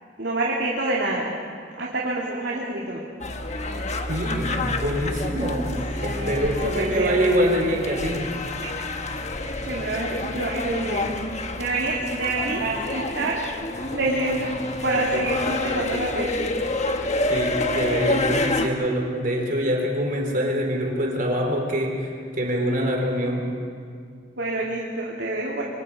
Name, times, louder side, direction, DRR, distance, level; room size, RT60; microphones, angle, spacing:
voice 1, 0.2-1.3 1.8-3.0 6.0-7.3 8.6-8.8 9.6-13.4 13.9-14.5 14.8-16.5 24.4-25.6, right 2 dB, 80° right, -4 dB, 2.8 m, -27 dB
sound 1, 3.2-18.7, left 2 dB, 40° left, 1.4 m, -28 dB
voice 2, 4.1-5.7 6.0-8.3 17.3-23.4, equal, 50° right, 1 dB, 4.2 m, -25 dB
27.0 x 25.0 x 5.0 m, 2.2 s
head